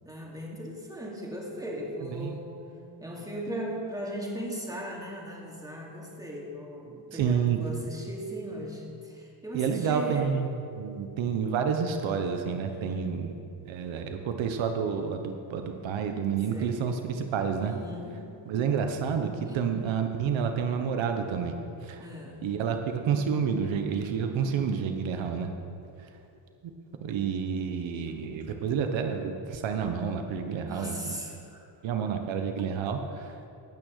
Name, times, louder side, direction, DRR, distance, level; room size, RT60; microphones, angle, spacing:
voice 1, 0.0-2.6 3.0-10.3 12.7-13.2 16.5-16.8 17.6-18.3 19.5-19.7 22.0-22.4 30.6-31.6, equal, 10° right, -2 dB, 2.5 m, -38 dB
voice 2, 7.1-7.6 9.5-13.3 13.7-17.7 18.5-21.5 21.8-22.0 22.4-25.5 26.0-26.1 27.0-31.2 31.8-33.4, right 6 dB, 90° right, 5 dB, 1.0 m, -29 dB
17.5 x 6.4 x 6.5 m, 2.7 s
cardioid pair, 115°, 45 cm